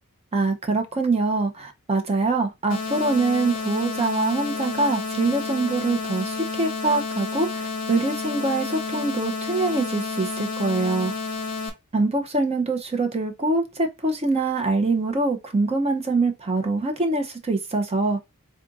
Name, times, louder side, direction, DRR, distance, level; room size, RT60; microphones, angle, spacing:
voice 1, 0.3-11.1 11.9-18.2, right 3 dB, 30° right, 0.6 m, -24 dB
sound 1, 2.7-11.7, left 3 dB, 40° left, 0.8 m, -30 dB
3.6 x 2.5 x 3.8 m
head